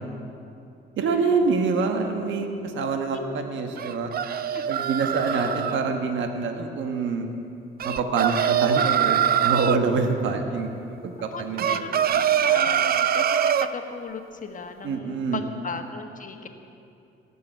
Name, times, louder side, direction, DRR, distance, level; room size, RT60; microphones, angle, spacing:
voice 1, 1.0-4.1 4.7-7.3 7.8-12.2 12.5-12.7 14.8-15.4, right 4 dB, 70° right, 4 dB, 1.3 m, -26 dB
sound 1, 3.8-5.8 7.8-9.8 11.6-13.7, right 9 dB, 50° right, 0.5 m, -23 dB
voice 2, 11.3-16.5, left 5 dB, 40° left, 5 dB, 1.4 m, -37 dB
18.0 x 7.0 x 7.8 m, 2.6 s
cardioid pair, 90°, 20 cm